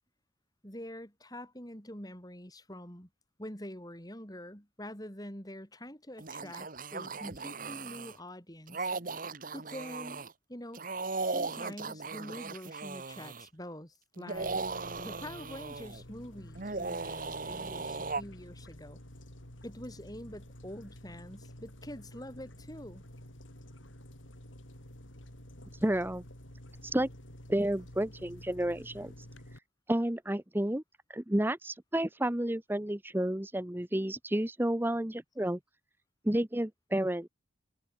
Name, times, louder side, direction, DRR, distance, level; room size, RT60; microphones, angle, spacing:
voice 1, 0.6-3.1 3.4-8.9 9.5-10.2 10.5-10.8 11.2-14.6 15.0-19.0 19.6-23.0, left 1 dB, 20° left, 7.6 m, -45 dB
sound 1, 6.2-8.2 8.7-10.3 10.7-13.5 14.2-16.0 16.6-18.2, right 3 dB, 45° right, 1.4 m, -37 dB
sound 2, 14.3-29.6, equal, 80° left, 7.2 m, -50 dB
voice 2, 25.8-26.2 26.9-27.1 27.5-29.1 29.9-30.8 31.1-35.6 36.2-37.3, right 1 dB, 10° right, 0.8 m, -31 dB
head